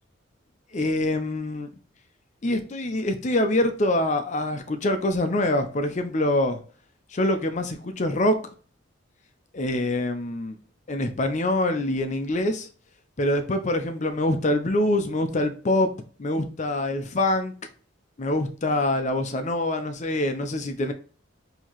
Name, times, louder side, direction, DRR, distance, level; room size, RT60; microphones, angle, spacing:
voice 1, 0.7-1.7 2.4-6.6 7.1-8.4 9.5-10.5 10.9-12.7 13.2-15.9 16.2-17.5 18.2-20.9, left 1 dB, 35° left, 0.5 m, -25 dB
4.5 x 2.8 x 2.9 m
head